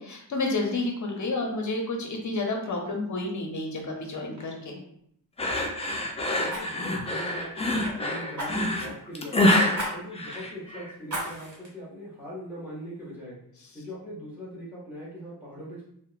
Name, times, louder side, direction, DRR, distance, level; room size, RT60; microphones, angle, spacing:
voice 1, 0.0-4.8, left 2 dB, 45° left, 2 dB, 0.7 m, -30 dB
Fire, 3.8-4.0 4.4-4.6 6.5-7.9 8.4-8.9 9.7-9.9 10.3-10.4 11.1-11.7 12.2-12.3, right 1 dB, 45° right, 1.0 m, -36 dB
sound 1, 5.4-10.9, left 1 dB, 15° left, 0.3 m, -26 dB
voice 2, 5.7-6.1 6.4-9.6 9.9-13.4 13.7-15.8, equal, 5° right, -8 dB, 1.1 m, -41 dB
2.8 x 2.1 x 2.3 m, 0.70 s
cardioid pair, 75°, 41 cm